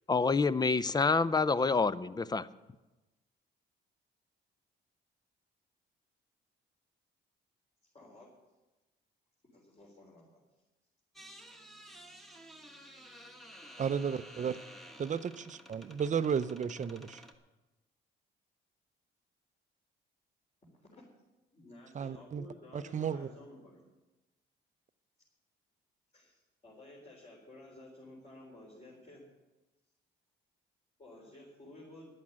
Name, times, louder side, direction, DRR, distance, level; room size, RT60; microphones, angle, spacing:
voice 1, 0.1-2.5, left 4 dB, 20° left, 16 dB, 0.5 m, -27 dB
voice 2, 7.9-8.3 9.4-10.4 11.6-11.7 20.9-21.0 21.5-23.8 26.1-29.2 31.0-32.1, left 1 dB, 35° left, -5 dB, 4.1 m, -53 dB
sound 1, 11.2-17.4, equal, ahead, 1.3 m, -52 dB
voice 3, 13.8-14.6 15.0-17.2 21.9-22.4 22.7-23.3, right 7 dB, 40° right, 13 dB, 0.6 m, -33 dB
10.5 x 8.5 x 8.6 m, 1.1 s
cardioid pair, 90°, 20 cm